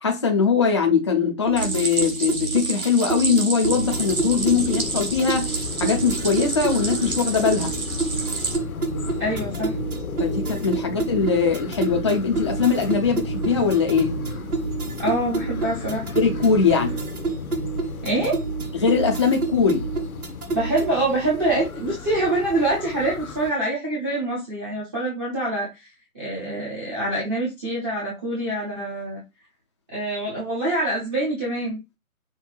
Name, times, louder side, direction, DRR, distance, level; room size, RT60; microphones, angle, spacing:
voice 1, 0.0-7.7 10.2-14.1 16.2-17.0 18.7-19.9, left 5 dB, 20° left, 0.5 m, -21 dB
sound 1, 1.5-21.0, right 4 dB, 85° right, 1.3 m, -29 dB
Stream, 1.6-8.6, right 3 dB, 70° right, 2.8 m, -30 dB
sound 2, 3.6-23.5, left 6 dB, 75° left, 0.9 m, -34 dB
voice 2, 9.2-9.7 15.0-16.0 18.0-18.4 20.5-25.7 26.1-29.2 29.9-31.8, right 1 dB, 10° right, 0.7 m, -25 dB
6.2 x 2.1 x 4.0 m
figure-of-eight pair, 145°, 43 cm